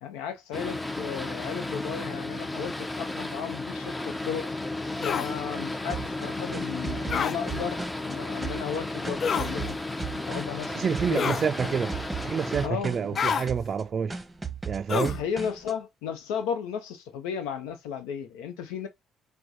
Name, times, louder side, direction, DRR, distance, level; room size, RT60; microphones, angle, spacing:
voice 1, 0.0-4.5 5.0-7.8 8.0-9.8 10.3-10.8 11.1-11.3 11.6-11.7 12.6-13.2 14.9-18.9, left 8 dB, 75° left, 0.7 m, -34 dB
Boat Water vehicle, 0.5-12.7, left 2 dB, 15° left, 0.7 m, -34 dB
sound 1, 5.0-5.3 7.1-7.4 9.2-9.5 11.2-11.5 13.1-13.5 14.9-15.2, left 7 dB, 50° left, 0.3 m, -27 dB
sound 2, 5.9-8.1 8.4-10.7 10.9-11.3 11.6-13.2 13.5-13.8 14.1-15.7, right 6 dB, 15° right, 0.8 m, -36 dB
voice 2, 10.7-14.2 14.6-15.2, right 6 dB, 45° right, 0.3 m, -28 dB
4.6 x 2.2 x 3.9 m
hypercardioid pair, 50°, 0 cm